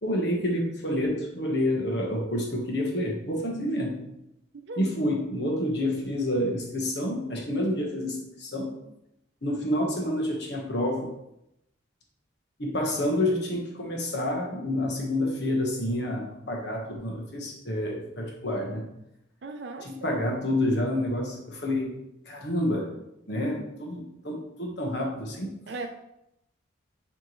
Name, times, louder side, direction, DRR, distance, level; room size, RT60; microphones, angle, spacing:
voice 1, 0.0-4.0 4.8-8.7 9.4-11.1 12.6-18.8 19.8-21.9 22.2-22.9 23.3-25.5, left 1 dB, 55° left, 0 dB, 1.3 m, -28 dB
voice 2, 19.4-20.2 25.7-25.9, right 3 dB, 60° right, 5 dB, 0.5 m, -37 dB
9.1 x 3.4 x 3.1 m, 0.85 s
head